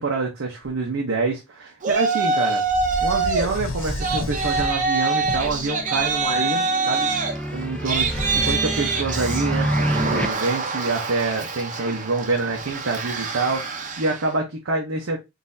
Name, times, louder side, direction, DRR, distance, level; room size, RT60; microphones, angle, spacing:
voice 1, 0.0-2.6 3.0-7.1 7.5-15.2, right 3 dB, 80° right, 0.7 m, -26 dB
sound 1, 0.6-0.7 2.6-6.3 7.9-8.6, left 1 dB, 75° left, 0.8 m, -31 dB
Yell, 1.8-3.5 3.8-14.3, right 4 dB, 40° right, 0.7 m, -25 dB
sound 2, 5.3-10.3, equal, 5° left, 0.3 m, -28 dB
3.9 x 2.6 x 2.6 m
head